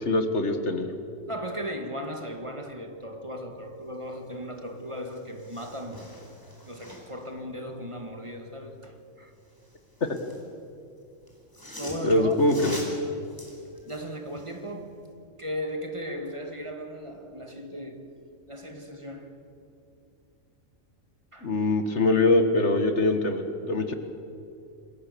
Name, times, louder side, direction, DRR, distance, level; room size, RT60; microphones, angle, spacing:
voice 1, 0.1-0.9 12.0-12.8 21.4-23.9, left 2 dB, 60° left, 1.9 m, -23 dB
voice 2, 1.3-6.2 6.7-9.3 11.8-12.3 13.8-15.0 15.4-18.1 18.5-19.4 21.3-21.6, equal, 25° right, 2.1 m, -37 dB
sound 1, 4.6-4.7 5.0-7.3 9.4-10.5 11.3-14.6 15.0-15.1, equal, 15° left, 4.5 m, -44 dB
27.0 x 21.0 x 7.0 m
omnidirectional pair, 1.4 m